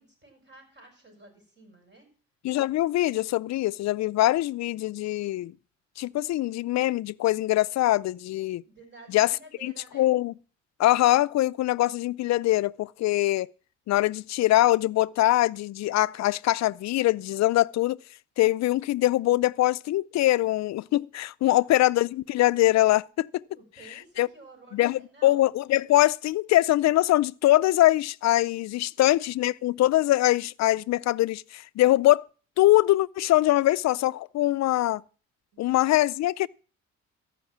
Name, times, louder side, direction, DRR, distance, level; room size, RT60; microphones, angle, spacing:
voice 1, 0.0-2.1 8.6-10.1 21.4-21.7 23.5-25.4 29.0-29.1 35.5-36.1, right 2 dB, 35° right, 6.9 m, -52 dB
voice 2, 2.4-5.5 6.0-8.6 9.1-9.3 9.6-10.3 10.8-13.5 13.9-18.0 18.4-23.3 24.2-24.3 24.7-32.2 32.6-35.0 35.6-36.5, left 15 dB, 65° left, 0.4 m, -23 dB
14.0 x 5.7 x 7.2 m
cardioid pair, 90°, 30 cm